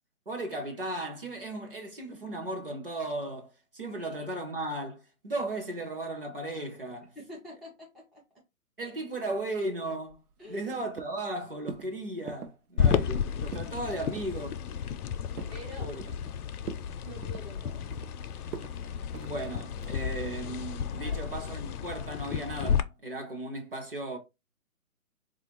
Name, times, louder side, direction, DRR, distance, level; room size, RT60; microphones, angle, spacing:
voice 1, 0.3-7.1 8.8-14.5 15.8-16.0 19.1-24.2, right 1 dB, 40° right, 0.6 m, -36 dB
voice 2, 3.9-4.4 7.2-8.2 10.4-10.7 13.9-14.0 15.5-15.9 17.0-17.9 20.9-21.2, equal, ahead, 0.4 m, -47 dB
sound 1, 10.1-10.7 11.0-11.3 11.7-11.9 12.3-12.6 12.9-13.2 13.4-13.8 14.2-14.4 14.8-15.6 16.0-16.3 16.6-16.9 17.2-18.1 18.5-18.7 19.1-19.3 19.8-20.1, right 6 dB, 85° right, 0.6 m, -42 dB
sound 2, 12.8-22.8, left 8 dB, 80° left, 0.5 m, -32 dB
3.4 x 2.4 x 3.0 m
hypercardioid pair, 175°, 44 cm